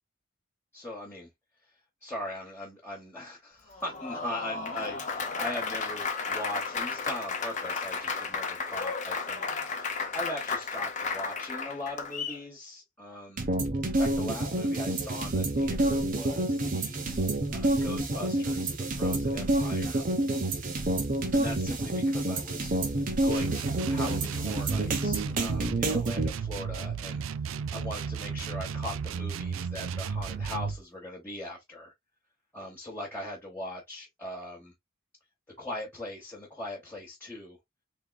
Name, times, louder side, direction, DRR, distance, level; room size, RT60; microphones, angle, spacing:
voice 1, 0.7-1.3 1.6-1.7 2.0-9.4 9.7-13.5 14.0-17.0 17.5-20.0 21.3-31.9 32.5-34.7 35.6-37.6, left 1 dB, 10° left, 1.0 m, -40 dB
Applause, 3.7-12.4, left 4 dB, 40° left, 0.8 m, -33 dB
sound 1, 13.4-26.3, right 1 dB, 40° right, 0.8 m, -28 dB
sound 2, 23.3-30.8, right 6 dB, 75° right, 0.4 m, -34 dB
3.6 x 3.5 x 2.3 m
head